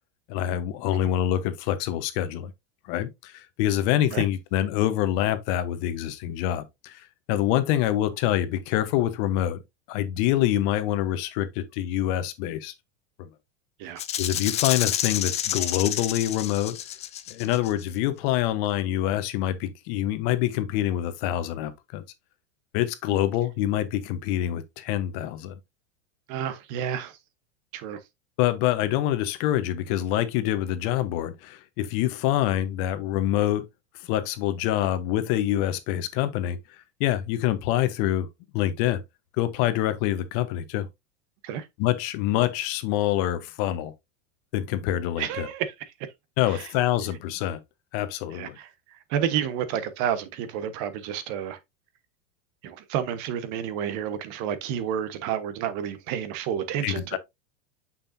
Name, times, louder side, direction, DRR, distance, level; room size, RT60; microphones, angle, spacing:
voice 1, 0.3-2.5 2.9-7.0 7.3-9.6 9.9-12.7 13.2-13.3 14.2-16.8 17.3-22.0 22.7-25.5 28.4-33.6 34.1-36.6 37.0-38.3 38.5-39.0 39.4-40.9 41.8-43.9 44.5-45.5 46.4-47.6 47.9-48.6 56.8-57.2, left 13 dB, 55° left, 1.1 m, -26 dB
Rattle (instrument), 14.0-17.8, left 11 dB, 20° left, 0.3 m, -29 dB
voice 2, 26.3-27.2 27.7-28.0 41.4-41.7 45.2-45.7 46.5-46.7 48.3-48.7 49.1-51.6 52.6-57.2, right 9 dB, 50° right, 1.2 m, -30 dB
6.6 x 5.7 x 2.6 m
supercardioid pair, 125°, 38 cm